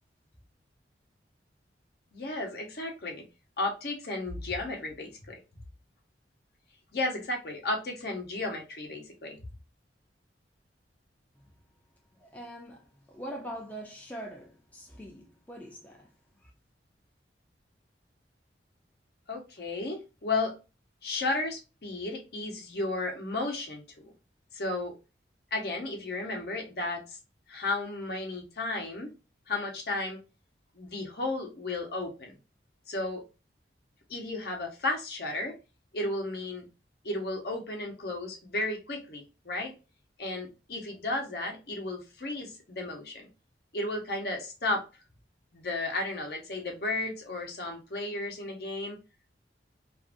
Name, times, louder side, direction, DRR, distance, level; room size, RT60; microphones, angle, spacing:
voice 1, 2.1-3.2 3.6-5.4 6.9-9.4 19.3-20.5 21.0-24.1 24.5-24.9 25.5-27.2 27.5-29.1 29.5-30.2 30.7-32.3 32.9-33.2 34.1-35.5 35.9-36.6 37.0-39.7 40.2-43.3 43.7-44.8 45.5-49.0, left 2 dB, 60° left, 0.9 m, -33 dB
voice 2, 12.1-16.1 16.4-16.5, equal, 10° left, 0.5 m, -43 dB
2.6 x 2.5 x 2.4 m
head